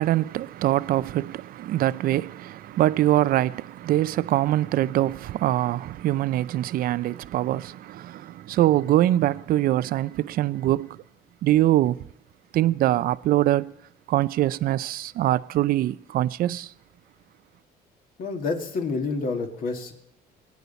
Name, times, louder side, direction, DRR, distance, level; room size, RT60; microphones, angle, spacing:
voice 1, 0.0-11.0 11.4-12.1 12.5-13.7 14.1-16.7, right 14 dB, 60° right, 0.4 m, -23 dB
voice 2, 18.2-19.9, left 4 dB, 55° left, 2.3 m, -28 dB
22.0 x 9.4 x 4.1 m
cardioid pair, 110°, 17 cm